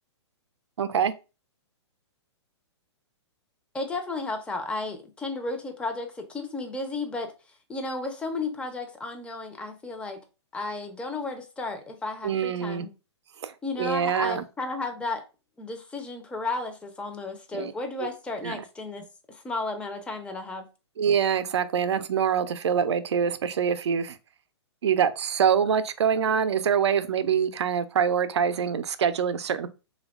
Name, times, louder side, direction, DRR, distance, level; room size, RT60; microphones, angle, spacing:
voice 1, 0.8-1.1 12.2-12.9 13.4-14.4 17.5-17.7 18.0-18.1 18.4-18.6 21.0-24.2 24.8-29.7, right 7 dB, 70° right, 0.4 m, -25 dB
voice 2, 3.7-7.3 7.7-10.2 10.5-12.9 13.6-15.2 15.6-20.7, left 3 dB, 5° left, 0.5 m, -33 dB
3.3 x 2.3 x 3.4 m
figure-of-eight pair, 120°, 15 cm